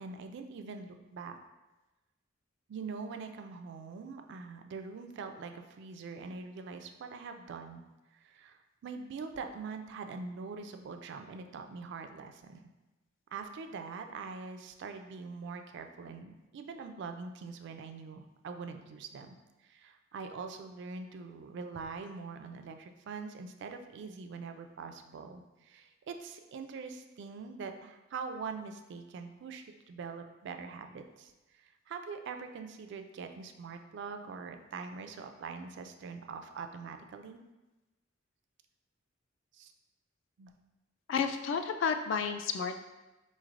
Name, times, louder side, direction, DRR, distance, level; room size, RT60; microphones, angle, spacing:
voice 1, 0.0-1.4 2.7-7.8 8.1-12.7 13.3-19.3 19.6-37.4 39.5-39.7 40.4-40.5, right 5 dB, 60° right, 6 dB, 0.3 m, -43 dB
voice 2, 41.1-42.9, left 6 dB, 65° left, 8 dB, 0.3 m, -31 dB
3.9 x 3.1 x 2.4 m, 1.1 s
head